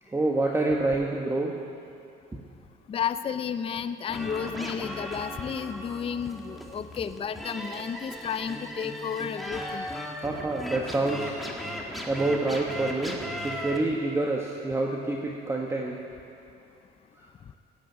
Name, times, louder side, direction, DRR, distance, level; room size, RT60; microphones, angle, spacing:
voice 1, 0.0-1.5 2.3-2.4 10.2-16.0 17.2-17.3, right 2 dB, 15° right, -1 dB, 1.3 m, -28 dB
voice 2, 2.9-9.9, left 7 dB, 35° left, 11 dB, 0.5 m, -32 dB
sound 1, 4.1-13.8, equal, ahead, 1.9 m, -37 dB
15.5 x 8.6 x 9.1 m, 2.5 s
cardioid pair, 110°, 17 cm